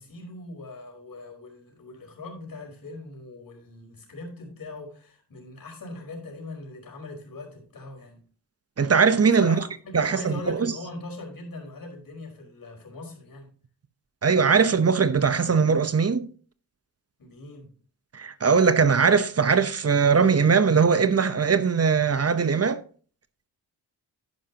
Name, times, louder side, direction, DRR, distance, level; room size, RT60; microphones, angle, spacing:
voice 1, 0.0-8.2 9.2-13.5 17.2-17.7, left 2 dB, 55° left, 4.9 m, -40 dB
voice 2, 8.8-9.6 9.9-10.7 14.2-16.3 18.1-22.8, right 5 dB, 35° right, 0.9 m, -20 dB
10.5 x 10.5 x 2.9 m
cardioid pair, 55°, 40 cm